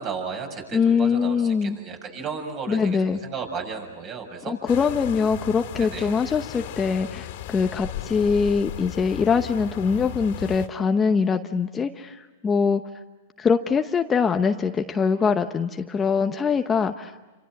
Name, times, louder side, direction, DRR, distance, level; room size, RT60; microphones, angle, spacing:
voice 1, 0.0-4.6 5.8-6.2, right 5 dB, 35° right, 4 dB, 7.0 m, -34 dB
voice 2, 0.7-1.8 2.7-3.2 4.5-12.8 13.4-17.1, left 5 dB, 15° left, 6 dB, 0.9 m, -23 dB
sound 1, 4.7-10.7, left 13 dB, 60° left, 2.4 m, -36 dB
29.5 x 26.5 x 7.7 m, 1.2 s
hypercardioid pair, 135°, 0 cm